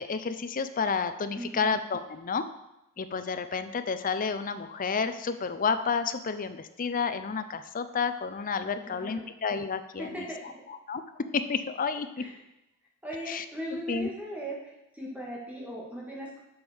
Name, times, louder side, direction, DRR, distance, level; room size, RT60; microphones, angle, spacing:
voice 1, 0.0-2.4 3.0-10.2 10.9-12.2 13.3-13.4 13.7-14.1, left 5 dB, 40° left, 11 dB, 0.5 m, -30 dB
voice 2, 1.3-1.7 8.9-9.3 10.0-10.5 12.2-12.3 13.0-14.6 14.9-16.4, equal, 5° right, -4 dB, 2.1 m, -38 dB
7.9 x 5.3 x 6.3 m, 0.90 s
head